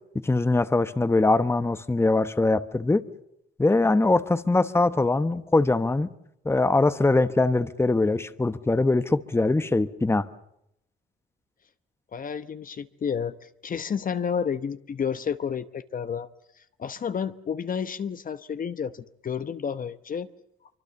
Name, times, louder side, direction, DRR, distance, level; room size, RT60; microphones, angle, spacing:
voice 1, 0.2-3.0 3.6-6.1 6.4-10.3, left 2 dB, 10° left, 1.0 m, -22 dB
voice 2, 12.1-16.3 16.8-20.3, left 7 dB, 45° left, 1.0 m, -31 dB
25.0 x 24.5 x 7.0 m
cardioid pair, 90°, 20 cm